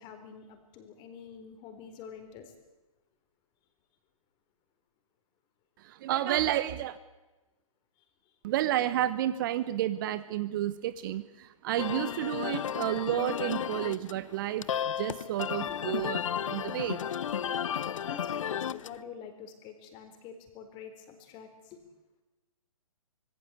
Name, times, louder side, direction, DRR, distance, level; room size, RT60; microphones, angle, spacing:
voice 1, 0.0-2.5 6.3-6.4 15.7-15.8 18.0-21.8, left 7 dB, 25° left, 7 dB, 4.0 m, -47 dB
voice 2, 5.8-7.0 8.4-17.0, right 13 dB, 35° right, 15 dB, 1.0 m, -31 dB
sound 1, 11.8-19.0, left 9 dB, 60° left, 0.8 m, -33 dB
25.5 x 20.5 x 8.4 m, 1.1 s
hypercardioid pair, 135°, 19 cm